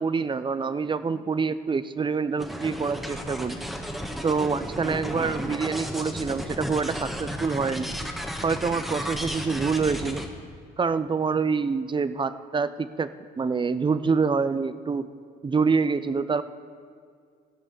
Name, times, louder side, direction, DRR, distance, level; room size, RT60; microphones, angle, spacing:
voice 1, 0.0-3.6 4.2-7.9 8.4-10.2 10.8-13.1 13.4-15.1 15.4-16.4, right 5 dB, 25° right, 14 dB, 0.6 m, -26 dB
sound 1, 2.4-10.3, equal, ahead, 1.4 m, -33 dB
15.5 x 5.4 x 6.8 m, 2.1 s
hypercardioid pair, 55°, 20 cm